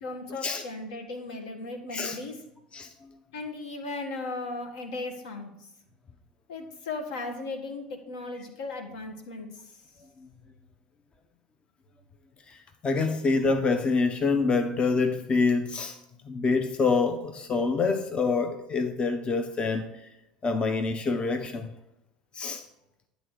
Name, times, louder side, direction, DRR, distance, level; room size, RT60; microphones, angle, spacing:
voice 1, 0.0-2.4 3.3-5.5 6.5-9.5, left 3 dB, 65° left, 1.3 m, -36 dB
voice 2, 2.7-3.2 12.5-16.0 16.2-20.1 20.4-21.7 22.3-22.6, left 4 dB, 25° left, 0.7 m, -26 dB
10.0 x 3.9 x 6.3 m
figure-of-eight pair, 70°, 4 cm